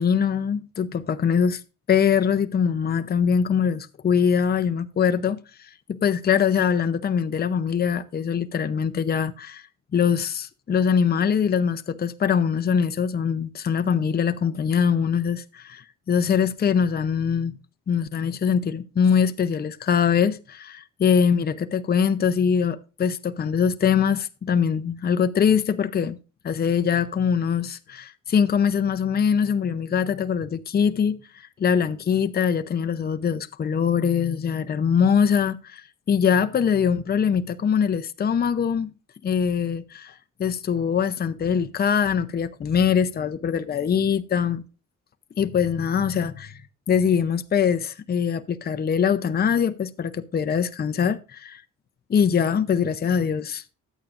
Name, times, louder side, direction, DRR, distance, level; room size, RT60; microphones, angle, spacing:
voice 1, 0.0-1.6 1.9-5.4 5.9-9.6 9.9-17.5 17.9-26.2 26.4-38.9 39.2-40.1 40.4-44.6 45.4-46.6 46.9-51.6 52.1-53.6, left 7 dB, 30° left, 0.6 m, -23 dB
12.0 x 8.7 x 2.5 m
cardioid pair, 90°, 30 cm